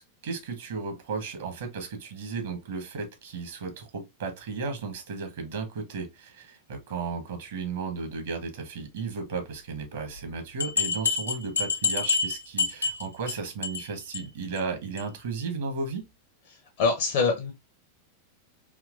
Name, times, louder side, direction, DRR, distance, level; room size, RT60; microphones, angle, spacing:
voice 1, 0.0-16.1, right 4 dB, 60° right, 1.0 m, -34 dB
sound 1, 10.2-10.3 10.6-13.3 13.6-13.9 14.1-14.2 14.6-14.7 15.0-15.1, left 5 dB, 80° left, 0.8 m, -27 dB
voice 2, 16.5-17.5, left 4 dB, 50° left, 0.6 m, -25 dB
3.6 x 2.8 x 2.5 m
figure-of-eight pair, 90°, 0 cm